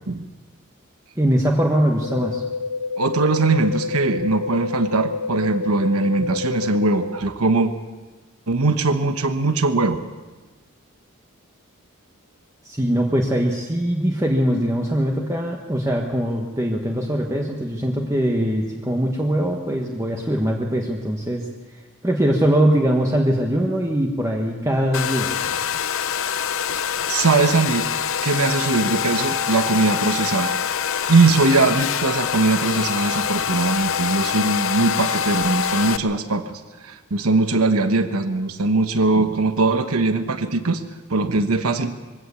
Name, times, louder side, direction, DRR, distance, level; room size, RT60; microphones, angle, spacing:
voice 1, 1.2-2.4 12.6-21.5 22.0-25.5, equal, 15° right, 0 dB, 1.4 m, -22 dB
sound 1, 2.0-7.0, left 4 dB, 90° left, 1.8 m, -28 dB
voice 2, 3.0-7.7 8.5-10.0 27.1-27.9 28.2-30.5 31.1-36.5 36.8-40.8 41.1-42.0, right 3 dB, 85° right, 9 dB, 1.1 m, -20 dB
Domestic sounds home sounds, 24.9-36.0, left 8 dB, 65° left, 0.7 m, -25 dB
22.5 x 16.5 x 7.1 m, 1.3 s
head